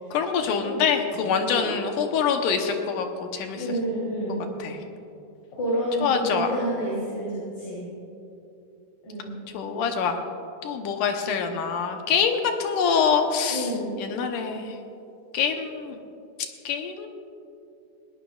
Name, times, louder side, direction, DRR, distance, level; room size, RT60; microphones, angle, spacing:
voice 1, 0.1-3.6 4.6-4.8 6.0-6.5 9.5-10.2 10.6-13.7 14.0-14.8 15.3-16.0 16.7-17.1, left 6 dB, 70° left, 4 dB, 2.1 m, -25 dB
voice 2, 3.5-4.4 5.6-7.8 9.0-9.4 13.5-13.9, equal, 45° left, -7 dB, 4.4 m, -29 dB
20.5 x 17.5 x 2.4 m, 2.6 s
omnidirectional pair, 4.5 m